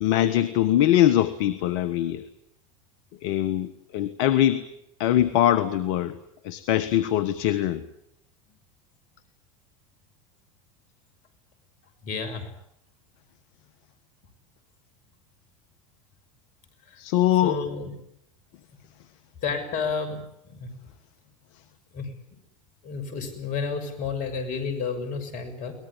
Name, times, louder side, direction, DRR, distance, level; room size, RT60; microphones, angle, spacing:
voice 1, 0.0-2.2 3.2-4.6 5.0-6.2 6.4-7.8 17.0-17.6, left 12 dB, 65° left, 15 dB, 1.4 m, -22 dB
voice 2, 12.0-12.4 17.4-17.9 19.4-20.2 20.5-20.7 21.9-22.1 22.8-25.7, left 5 dB, 50° left, 9 dB, 6.6 m, -30 dB
23.0 x 19.5 x 10.0 m, 0.78 s
hypercardioid pair, 85°, 17 cm